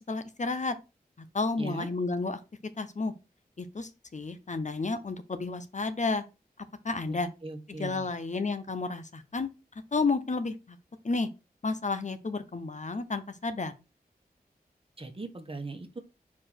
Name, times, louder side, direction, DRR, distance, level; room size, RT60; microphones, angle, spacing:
voice 1, 0.1-0.8 1.3-2.4 2.8-3.1 3.6-6.2 6.8-7.3 7.8-9.5 9.9-10.8 11.0-11.3 11.6-13.7, left 3 dB, 50° left, 11 dB, 1.0 m, -31 dB
voice 2, 1.6-1.9 7.1-8.1 15.0-16.0, right 2 dB, 35° right, 6 dB, 1.4 m, -39 dB
4.9 x 4.6 x 5.9 m, 0.28 s
wide cardioid pair, 60°, 16 cm